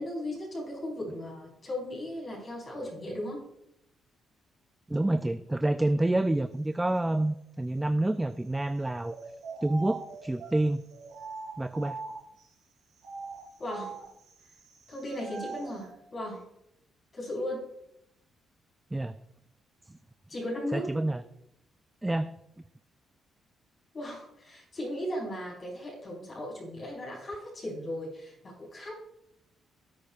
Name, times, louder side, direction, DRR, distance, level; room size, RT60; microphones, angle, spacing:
voice 1, 0.0-3.4 13.6-14.0 14.9-16.5 17.1-17.6 20.3-20.9 23.9-28.9, left 1 dB, 40° left, -4 dB, 4.6 m, -36 dB
voice 2, 4.9-9.1 9.6-10.8 11.6-12.0 18.9-19.1 20.7-21.2 22.0-22.3, right 1 dB, 10° right, 10 dB, 0.4 m, -28 dB
sound 1, 9.0-12.4 13.0-15.9, right 4 dB, 80° right, 3.8 m, -42 dB
17.5 x 8.7 x 2.4 m, 0.82 s
cardioid pair, 90°, 0 cm